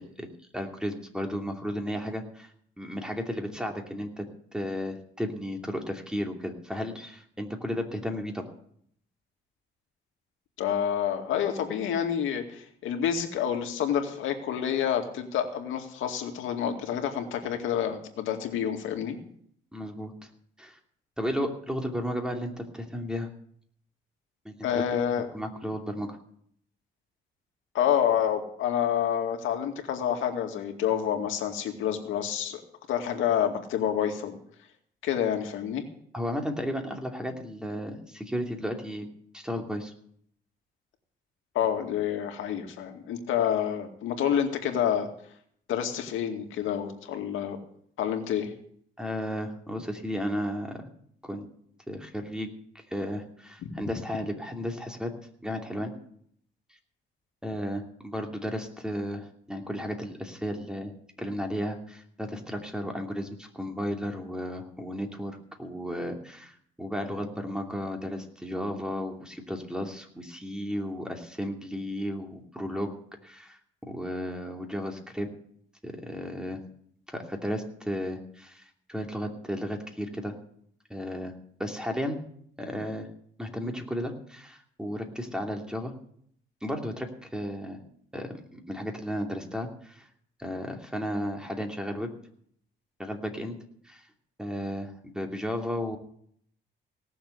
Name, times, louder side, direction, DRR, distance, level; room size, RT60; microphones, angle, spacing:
voice 1, 0.0-2.5 2.8-4.3 4.5-8.5 19.7-20.1 20.6-20.8 21.2-23.3 24.4-24.8 25.3-26.2 36.1-39.1 39.3-39.9 49.0-50.8 51.2-51.5 51.9-52.5 52.9-55.1 55.4-55.9 57.4-60.9 61.2-72.9 73.2-75.3 75.8-76.6 77.1-80.3 80.9-81.3 81.6-82.2 82.6-83.1 83.4-85.9 86.6-87.8 88.1-90.1 90.4-92.1 93.0-93.6 93.8-94.0 94.4-96.0, equal, 5° right, 3 dB, 2.7 m, -34 dB
voice 2, 10.6-19.2 24.6-25.3 27.7-32.6 32.9-34.4 35.0-35.8 41.5-45.1 45.7-47.6 48.0-48.5 53.6-53.7, left 9 dB, 85° left, 4 dB, 2.2 m, -28 dB
18.0 x 7.1 x 7.9 m, 0.65 s
cardioid pair, 90°, 20 cm